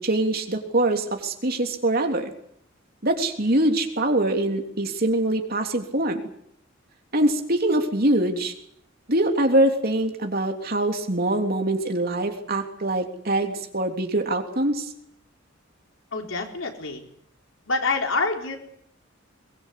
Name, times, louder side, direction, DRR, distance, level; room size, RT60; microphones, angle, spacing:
voice 1, 0.0-2.3 3.0-6.2 7.1-8.5 9.1-14.9, right 1 dB, 50° right, 4 dB, 3.4 m, -23 dB
voice 2, 16.1-17.0 17.7-18.6, left 3 dB, 90° left, 2 dB, 4.3 m, -26 dB
22.5 x 21.5 x 8.5 m, 0.71 s
head